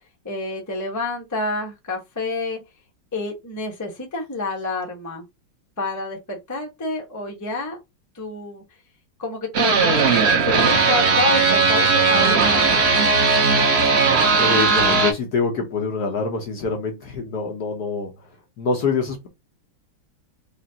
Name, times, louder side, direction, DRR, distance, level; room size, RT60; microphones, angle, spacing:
voice 1, 0.2-2.6 3.1-5.2 5.8-7.8 8.1-8.6 9.2-12.8, left 3 dB, 15° left, 0.6 m, -28 dB
sound 1, 9.5-15.1, right 4 dB, 75° right, 0.6 m, -17 dB
voice 2, 14.4-18.1 18.6-19.3, left 4 dB, 60° left, 1.2 m, -25 dB
4.9 x 2.5 x 2.8 m
omnidirectional pair, 2.3 m